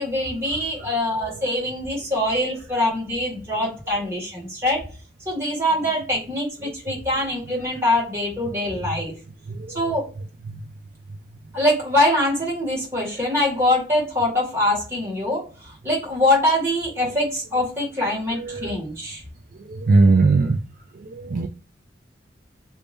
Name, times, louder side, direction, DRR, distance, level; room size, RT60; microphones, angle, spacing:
voice 1, 0.0-4.8 5.3-9.1 9.7-10.0 11.5-19.2, left 1 dB, 15° right, 1.9 m, -23 dB
voice 2, 9.5-9.8 10.5-10.6 18.3-18.8 19.7-20.6 21.1-21.5, right 3 dB, 45° right, 0.3 m, -19 dB
3.2 x 2.7 x 3.4 m
head